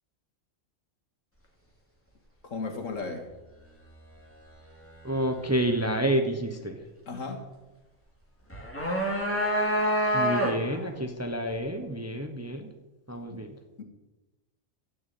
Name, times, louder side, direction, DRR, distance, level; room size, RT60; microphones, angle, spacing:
voice 1, 2.4-3.3 7.1-7.5 13.3-13.5 13.8-13.9, left 3 dB, 85° left, 3 dB, 2.3 m, -35 dB
voice 2, 5.0-6.8 10.1-12.7 13.1-13.6, right 1 dB, 15° right, 5 dB, 1.0 m, -29 dB
sound 1, 8.5-10.8, equal, 10° left, 2.7 m, -26 dB
13.5 x 7.1 x 8.4 m, 1.1 s
omnidirectional pair, 1.3 m